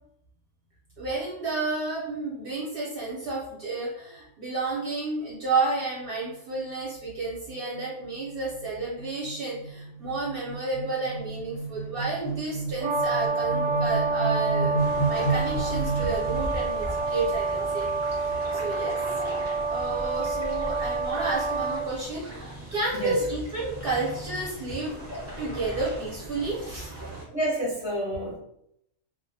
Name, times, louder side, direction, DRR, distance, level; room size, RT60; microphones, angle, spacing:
voice 1, 1.0-14.8 15.0-17.9 18.5-19.0 19.7-25.0 25.4-26.9, right 3 dB, 55° right, -6 dB, 0.7 m, -31 dB
sound 1, 6.0-6.3 6.7-6.8 7.1-16.7, right 3 dB, 65° left, 0.7 m, -32 dB
Brass instrument, 12.8-21.8, right 3 dB, 85° right, 1.0 m, -28 dB
sound 2, 14.8-27.2, right 1 dB, 20° right, 0.4 m, -38 dB
voice 2, 27.3-28.4, equal, 25° left, -8 dB, 0.7 m, -29 dB
2.2 x 2.1 x 2.6 m, 0.75 s
omnidirectional pair, 1.3 m